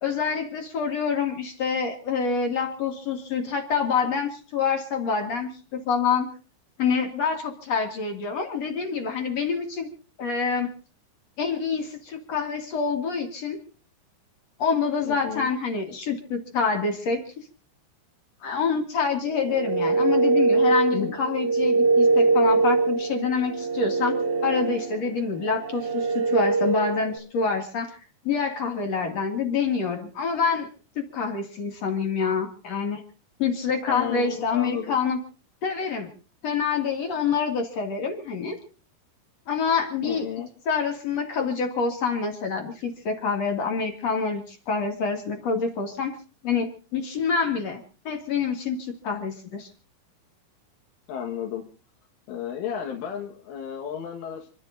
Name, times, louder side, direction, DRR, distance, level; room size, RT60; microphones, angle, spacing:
voice 1, 0.0-6.3 6.8-9.9 10.2-10.7 11.4-13.6 14.6-17.4 18.4-24.2 24.4-28.0 28.2-30.7 30.9-33.0 33.4-35.2 35.6-36.1 36.4-38.6 39.5-40.2 40.7-46.1 46.4-49.7, left 5 dB, 45° left, 3 dB, 2.6 m, -26 dB
voice 2, 15.0-15.5 20.7-21.2 33.9-35.0 40.0-40.5 51.1-51.6 52.3-54.5, left 9 dB, 75° left, 0 dB, 3.9 m, -33 dB
sound 1, 19.3-27.2, right 3 dB, 65° right, 2.0 m, -23 dB
29.5 x 12.5 x 2.7 m, 0.38 s
omnidirectional pair, 5.8 m